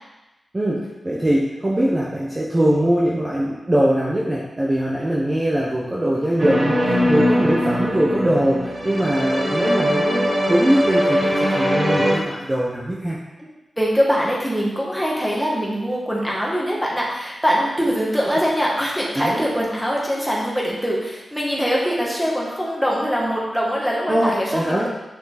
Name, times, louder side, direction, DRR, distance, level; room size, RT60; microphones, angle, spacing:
voice 1, 0.5-13.2 19.1-19.4 24.1-24.9, right 1 dB, 20° right, -5 dB, 1.2 m, -21 dB
sound 1, 6.4-12.2, equal, 45° right, 2.7 m, -21 dB
voice 2, 13.8-24.9, equal, ahead, -4 dB, 2.0 m, -22 dB
9.1 x 6.5 x 4.1 m, 1.0 s
wide cardioid pair, 145°, 0 cm